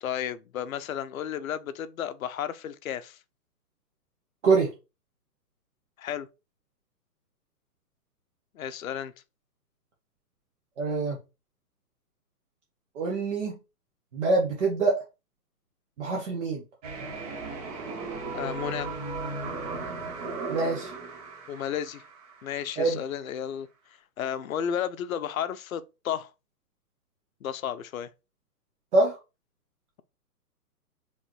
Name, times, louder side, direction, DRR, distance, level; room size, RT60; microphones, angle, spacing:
voice 1, 0.0-3.2 6.0-6.3 8.5-9.1 18.3-18.9 21.5-22.0 22.4-23.7 24.2-26.3 27.4-28.1, left 9 dB, 60° left, 0.7 m, -33 dB
voice 2, 10.8-11.2 12.9-13.5 14.1-15.0 16.0-16.6 20.5-20.9 22.8-23.0 28.9-29.2, right 3 dB, 45° right, 1.3 m, -25 dB
sound 1, 16.8-22.8, right 3 dB, 25° right, 0.8 m, -36 dB
5.3 x 3.2 x 3.0 m
figure-of-eight pair, 125°, 48 cm